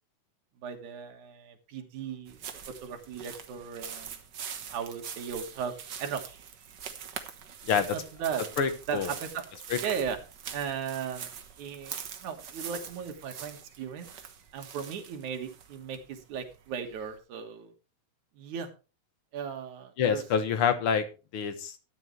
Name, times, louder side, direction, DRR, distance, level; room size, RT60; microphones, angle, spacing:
voice 1, 0.6-2.4 2.8-4.2 4.7-6.2 7.9-8.4 8.9-9.4 9.8-10.2 10.5-11.3 11.6-14.1 14.5-17.7 18.3-18.7 19.3-20.2, right 7 dB, 80° right, 4 dB, 3.0 m, -36 dB
sound 1, 2.3-17.1, right 7 dB, 55° right, 1.2 m, -43 dB
voice 2, 8.6-9.1 9.7-9.8 20.0-21.1 21.3-21.8, left 7 dB, 60° left, 10 dB, 1.7 m, -26 dB
13.0 x 9.7 x 3.2 m, 0.32 s
omnidirectional pair, 3.4 m